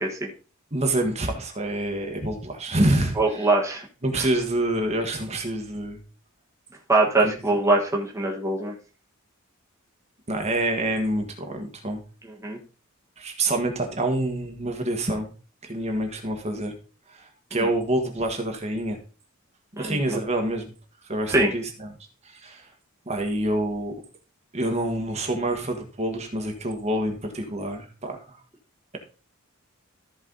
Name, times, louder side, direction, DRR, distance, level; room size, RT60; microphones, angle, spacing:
voice 1, 0.7-3.5 4.0-6.0 7.2-7.3 10.3-12.0 13.2-15.3 15.6-16.7 17.1-17.2 17.5-19.0 19.7-20.7 21.0-21.9 22.2-22.6 23.1-23.9 24.5-28.4, right 1 dB, 30° right, 3 dB, 1.5 m, -27 dB
voice 2, 3.2-3.9 4.2-4.3 6.9-8.7 12.4-12.6 19.8-20.2 21.3-21.5, right 2 dB, 15° right, -1 dB, 1.4 m, -22 dB
14.0 x 4.7 x 3.9 m, 0.36 s
head